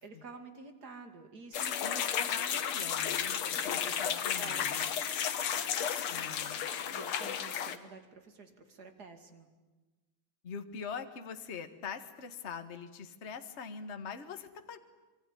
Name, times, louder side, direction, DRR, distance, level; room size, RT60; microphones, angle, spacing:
voice 1, 0.0-2.1 3.5-4.9 6.9-9.5, right 4 dB, 50° right, 7 dB, 3.1 m, -50 dB
sound 1, 1.5-7.8, left 8 dB, 85° left, 2.2 m, -33 dB
voice 2, 1.8-4.9 6.1-6.6 10.4-14.8, left 6 dB, 35° left, 8 dB, 1.6 m, -43 dB
25.0 x 24.0 x 10.0 m, 1.2 s
omnidirectional pair, 2.3 m